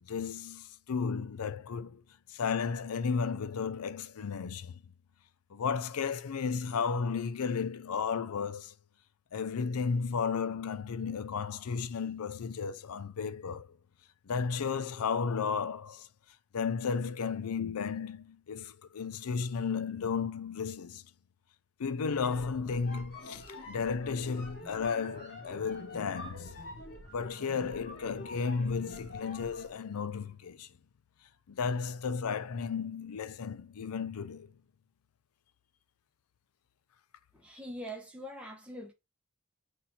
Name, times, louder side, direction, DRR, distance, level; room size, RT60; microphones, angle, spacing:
voice 1, 0.0-2.0 2.3-4.8 5.5-8.7 9.3-13.8 14.3-16.1 16.5-21.0 21.8-26.6 27.1-30.7 31.5-34.5, left 5 dB, 85° left, 0.5 m, -34 dB
sound 1, 22.0-29.8, left 1 dB, 50° left, 1.7 m, -47 dB
voice 2, 37.3-38.9, equal, 5° right, 0.9 m, -43 dB
4.1 x 2.7 x 4.3 m
head